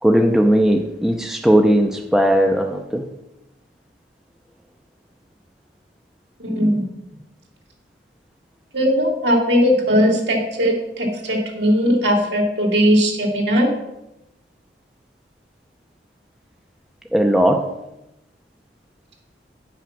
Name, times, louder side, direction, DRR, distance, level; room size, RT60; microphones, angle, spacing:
voice 1, 0.0-3.0 17.1-17.7, equal, 5° right, 3 dB, 0.5 m, -17 dB
voice 2, 6.4-6.8 8.7-13.7, equal, 65° right, 0 dB, 2.6 m, -18 dB
9.6 x 6.1 x 5.8 m, 0.90 s
head